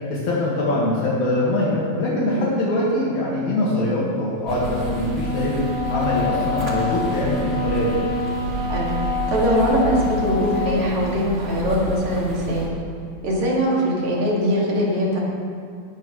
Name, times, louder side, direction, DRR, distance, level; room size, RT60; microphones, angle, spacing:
voice 1, 0.1-5.6 5.9-8.0, left 1 dB, 75° left, -6 dB, 3.3 m, -23 dB
sound 1, 4.5-12.7, right 2 dB, 30° right, 1.8 m, -30 dB
Wind instrument woodwind instrument, 4.6-10.9, left 4 dB, 30° left, 2.8 m, -27 dB
voice 2, 8.7-12.7 13.2-15.2, equal, 70° right, -4 dB, 3.8 m, -22 dB
19.5 x 12.0 x 3.2 m, 2.4 s
omnidirectional pair, 3.3 m